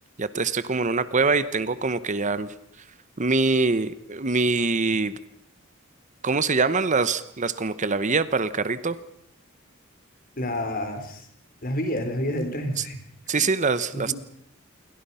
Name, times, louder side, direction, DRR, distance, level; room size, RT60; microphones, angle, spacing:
voice 1, 0.2-2.5 3.2-5.2 6.2-9.0 12.8-12.9 13.3-14.1, right 4 dB, 35° right, 14 dB, 0.9 m, -24 dB
voice 2, 10.4-11.3 11.6-13.0 13.4-13.5 13.9-14.1, left 1 dB, 45° left, 6 dB, 4.1 m, -29 dB
28.5 x 23.5 x 5.7 m, 0.73 s
head